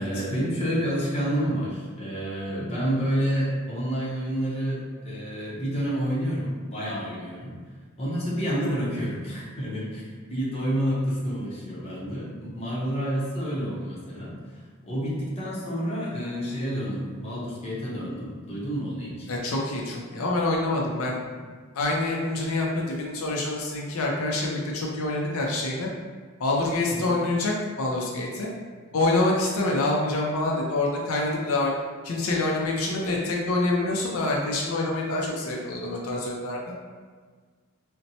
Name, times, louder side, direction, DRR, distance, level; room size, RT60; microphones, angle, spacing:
voice 1, 0.0-7.6 8.0-19.3 21.3-21.4 26.9-27.1, equal, 30° left, -6 dB, 0.7 m, -29 dB
voice 2, 19.3-21.1 21.7-25.9 26.4-28.5 28.9-36.7, left 2 dB, 85° left, -2 dB, 0.5 m, -26 dB
4.1 x 2.1 x 2.7 m, 1.5 s
head